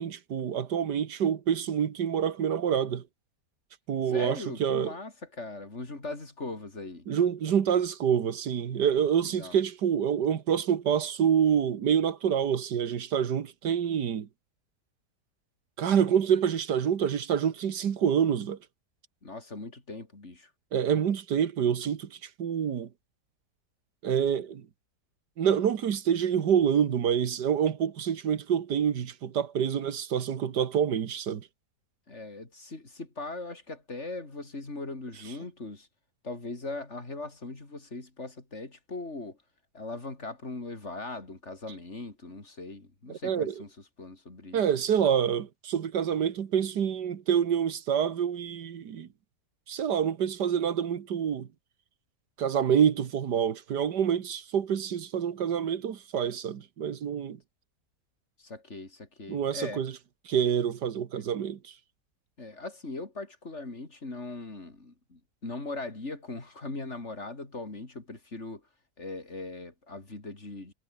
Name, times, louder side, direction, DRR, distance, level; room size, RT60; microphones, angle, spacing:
voice 1, 0.0-3.0 3.9-4.9 7.1-14.3 15.8-18.6 20.7-22.9 24.0-24.7 25.4-31.5 43.2-43.5 44.5-49.1 49.7-51.5 52.4-57.4 59.3-59.9 60.3-61.7, right 8 dB, 90° right, 2.0 m, -27 dB
voice 2, 4.1-7.1 9.2-9.6 19.2-20.5 32.1-35.9 36.2-39.4 39.7-43.7 44.0-44.6 58.4-59.8 62.4-68.6 69.0-70.7, left 2 dB, 45° left, 4.3 m, -40 dB
omnidirectional pair, 1.7 m